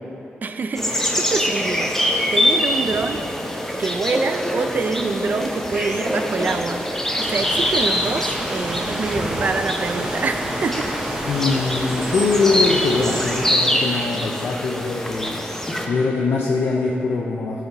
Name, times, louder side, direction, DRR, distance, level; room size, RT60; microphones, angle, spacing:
voice 1, 0.4-3.3 3.8-10.9, right 4 dB, 50° right, 8 dB, 0.4 m, -26 dB
sound 1, 0.8-15.9, equal, 10° left, 0.6 m, -24 dB
sound 2, 7.2-13.5, right 1 dB, 20° right, 0.8 m, -29 dB
voice 2, 11.2-15.6 15.9-17.6, left 4 dB, 75° left, -1 dB, 0.5 m, -22 dB
11.5 x 4.0 x 2.9 m, 2.9 s
cardioid pair, 80°, 4 cm